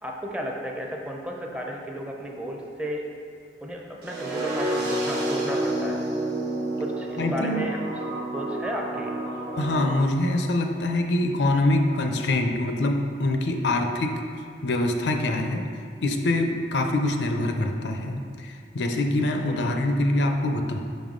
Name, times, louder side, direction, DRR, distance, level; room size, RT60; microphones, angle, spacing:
voice 1, 0.0-3.1 3.6-6.0 6.8-7.8 8.3-9.1 19.5-19.9, equal, 5° right, 0 dB, 0.5 m, -33 dB
sound 1, 4.0-10.0, right 1 dB, 65° right, 1.2 m, -29 dB
voice 2, 7.2-7.7 9.6-14.2 14.6-15.7 16.0-20.8, left 1 dB, 75° left, 4 dB, 0.5 m, -24 dB
5.4 x 5.4 x 3.7 m, 2.3 s
head